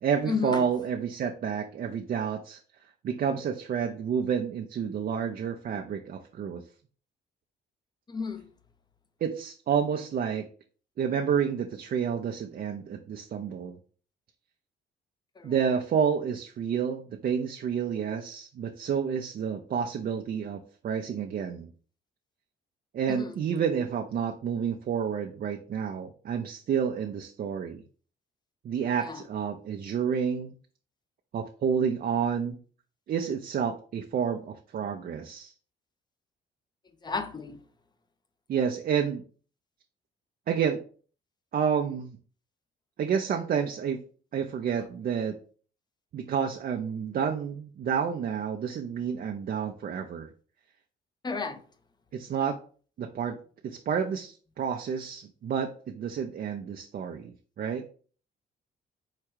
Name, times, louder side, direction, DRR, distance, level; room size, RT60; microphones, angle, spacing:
voice 1, 0.0-2.6 3.0-6.6 9.2-10.5 11.0-13.8 15.4-21.7 22.9-27.8 28.6-30.5 31.3-32.6 33.1-35.5 38.5-39.2 40.5-40.8 41.5-42.2 43.0-44.0 44.3-45.4 46.1-50.3 52.1-52.6 53.0-53.4 53.6-57.3 57.6-57.8, right 7 dB, 50° right, 0.5 m, -29 dB
voice 2, 37.0-37.6 51.2-51.6, left 5 dB, 20° left, 0.6 m, -31 dB
4.8 x 2.2 x 4.5 m
cardioid pair, 90°, 20 cm